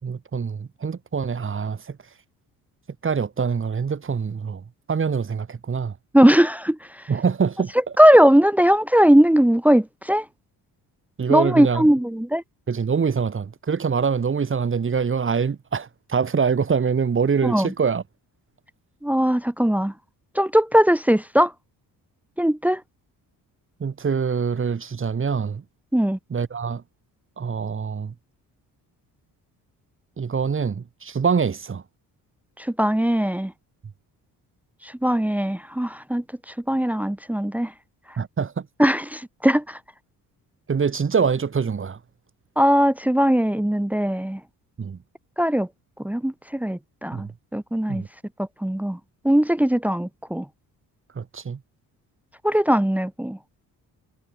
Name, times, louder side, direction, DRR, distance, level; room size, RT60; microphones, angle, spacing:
voice 1, 0.0-2.0 3.0-5.9 7.1-7.7 11.2-11.9 12.7-18.0 23.8-25.6 26.3-26.8 27.4-28.1 30.2-31.8 38.2-38.7 40.7-42.0 44.8-45.0 47.1-47.3 47.9-48.1 51.1-51.6, right 6 dB, 35° right, 3.5 m, -24 dB
voice 2, 6.1-6.8 8.0-10.2 11.3-12.4 17.4-17.7 19.0-19.9 20.3-21.5 22.4-22.8 25.9-26.2 32.6-33.5 34.8-36.2 36.7-37.7 38.8-39.8 42.6-44.4 45.4-45.7 46.0-48.0 48.4-49.0 49.2-50.4 52.4-53.4, equal, 5° right, 1.6 m, -19 dB
cardioid pair, 110°, 37 cm